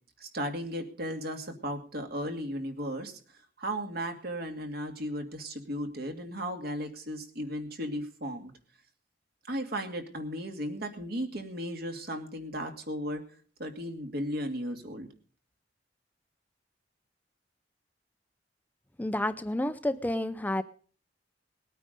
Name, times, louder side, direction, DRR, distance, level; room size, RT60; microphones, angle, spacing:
voice 1, 0.2-3.2 3.6-8.5 9.5-13.2 13.6-15.1, equal, 60° right, 5 dB, 2.4 m, -35 dB
voice 2, 19.0-20.6, left 1 dB, 10° left, 12 dB, 0.5 m, -30 dB
19.5 x 9.1 x 5.3 m, 0.43 s
head